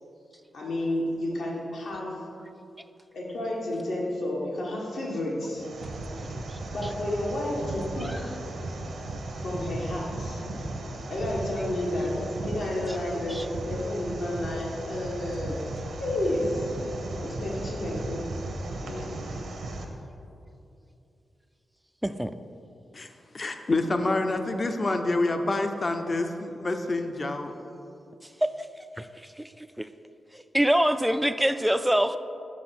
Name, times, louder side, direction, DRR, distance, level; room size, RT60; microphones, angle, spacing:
voice 1, 0.5-2.2 3.1-5.7 6.7-8.4 9.3-10.4 11.1-15.7 16.0-16.7 17.2-18.3 18.8-19.2, left 1 dB, 75° left, -4 dB, 1.7 m, -31 dB
sound 1, 5.5-19.8, right 2 dB, 80° right, 0.9 m, -36 dB
voice 2, 23.3-27.6, left 2 dB, 40° left, 6 dB, 0.6 m, -27 dB
voice 3, 30.3-32.2, equal, 5° right, 10 dB, 0.3 m, -24 dB
6.1 x 5.3 x 5.9 m, 2.7 s
cardioid pair, 75°, 0 cm